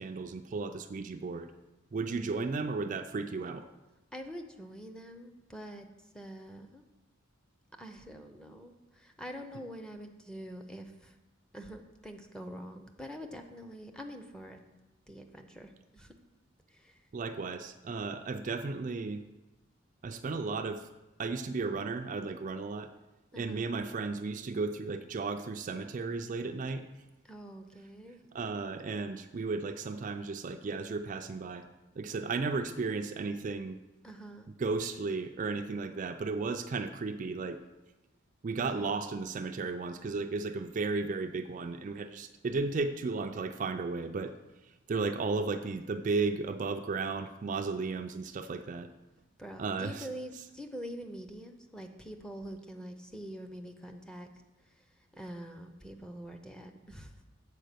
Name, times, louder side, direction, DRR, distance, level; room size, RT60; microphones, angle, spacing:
voice 1, 0.0-1.5 1.9-3.7 17.1-19.2 20.0-20.9 21.2-22.9 23.4-26.8 28.3-31.6 32.0-33.8 34.6-37.6 38.4-44.3 44.9-48.9 49.6-50.1, right 4 dB, 40° right, 7 dB, 0.3 m, -34 dB
voice 2, 4.1-5.9 6.1-6.8 7.8-11.1 11.5-14.6 15.1-16.1 16.7-17.0 23.3-23.7 27.2-28.2 34.0-34.5 38.6-39.0 49.4-54.3 55.2-57.1, equal, 5° left, 6 dB, 0.6 m, -45 dB
7.4 x 4.8 x 6.7 m, 1.0 s
head